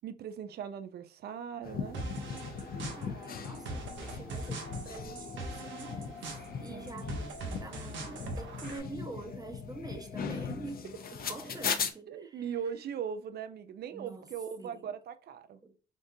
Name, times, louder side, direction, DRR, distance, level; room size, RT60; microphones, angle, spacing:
voice 1, 0.0-2.0 6.7-7.0 11.5-11.6 12.1-15.6, right 8 dB, 55° right, 0.4 m, -39 dB
sound 1, 1.6-11.9, left 6 dB, 50° left, 0.6 m, -39 dB
sound 2, 1.9-8.8, right 3 dB, 70° right, 0.8 m, -42 dB
voice 2, 3.0-6.2 6.6-10.9 11.1-12.6 13.9-14.3 14.6-14.9 15.6-15.7, right 2 dB, 20° right, 0.7 m, -46 dB
3.6 x 2.5 x 2.6 m
cardioid pair, 90°, 20 cm